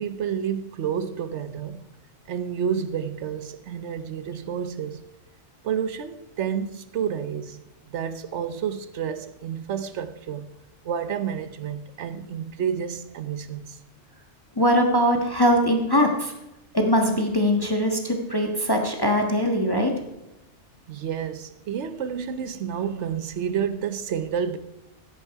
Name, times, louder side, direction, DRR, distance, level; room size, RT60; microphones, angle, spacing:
voice 1, 0.0-1.8 2.3-5.0 5.6-10.5 10.8-13.8 20.9-24.6, right 8 dB, 65° right, 1.1 m, -30 dB
voice 2, 14.6-16.3 16.7-19.9, equal, 20° left, 1.4 m, -21 dB
16.0 x 9.0 x 4.7 m
omnidirectional pair, 1.3 m